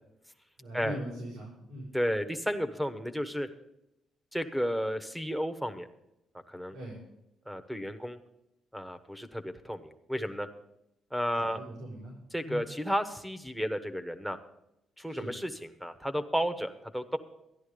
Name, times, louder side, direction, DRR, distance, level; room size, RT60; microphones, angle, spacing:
voice 1, 0.6-1.9 6.7-7.0 11.3-12.1 12.4-12.6 15.1-15.3, right 1 dB, 90° right, -5 dB, 5.6 m, -41 dB
voice 2, 1.9-3.5 4.3-5.9 6.5-6.7 7.5-8.2 8.7-10.5 11.1-11.6 12.3-14.4 15.0-17.2, equal, 5° right, 11 dB, 1.2 m, -32 dB
13.5 x 10.5 x 5.2 m, 0.86 s
cardioid pair, 90°, 0 cm